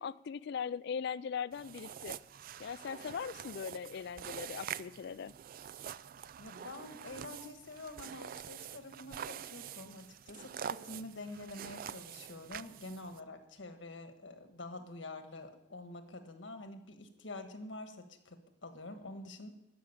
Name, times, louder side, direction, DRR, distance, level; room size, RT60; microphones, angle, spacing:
voice 1, 0.0-2.2 2.6-5.3, left 6 dB, 60° left, 19 dB, 0.4 m, -40 dB
sound 1, 1.5-13.2, right 9 dB, 50° right, 0.3 m, -46 dB
voice 2, 6.4-19.5, left 2 dB, 85° left, 7 dB, 1.4 m, -47 dB
12.5 x 6.1 x 8.6 m, 0.92 s
head